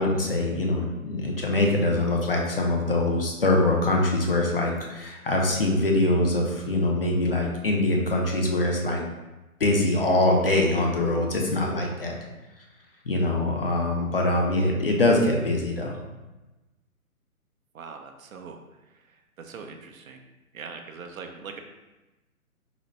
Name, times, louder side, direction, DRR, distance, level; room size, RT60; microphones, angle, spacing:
voice 1, 0.0-9.0 9.6-12.1 13.1-16.0, left 2 dB, 40° left, 0 dB, 0.4 m, -23 dB
voice 2, 17.7-18.6 19.1-20.2 20.5-21.6, right 5 dB, 65° right, 5 dB, 0.5 m, -41 dB
3.9 x 2.1 x 3.2 m, 1.1 s
figure-of-eight pair, 140°, 45 cm